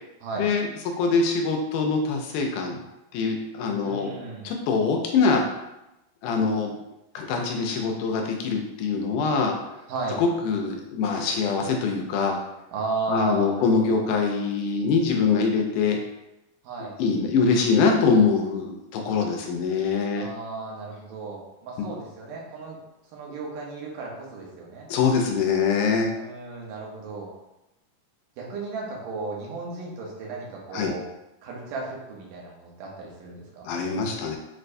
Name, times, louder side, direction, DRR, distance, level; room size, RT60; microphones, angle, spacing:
voice 1, 0.4-0.7 1.0-2.8 3.1-4.1 4.4-5.5 6.2-6.7 7.1-9.5 10.2-12.4 13.1-16.0 17.0-20.3 24.9-26.1 30.7-30.9 33.7-34.4, left 5 dB, 80° left, 2 dB, 2.0 m, -23 dB
voice 2, 3.8-4.4 9.9-10.2 12.7-14.1 16.6-17.0 20.2-22.8 23.1-24.9 26.1-27.3 28.4-31.0 31.4-33.7, right 3 dB, 85° right, -3 dB, 2.5 m, -34 dB
6.4 x 2.2 x 2.5 m, 0.92 s
omnidirectional pair, 3.7 m